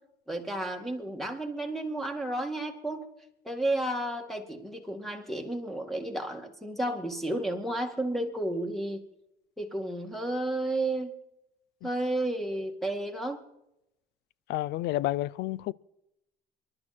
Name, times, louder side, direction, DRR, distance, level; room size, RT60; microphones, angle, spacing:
voice 1, 0.3-3.1 3.4-9.0 9.6-11.1 11.8-13.4, right 1 dB, ahead, 2.2 m, -32 dB
voice 2, 14.5-15.7, left 16 dB, 80° left, 0.5 m, -30 dB
25.0 x 12.0 x 4.4 m
cardioid pair, 110°, 17 cm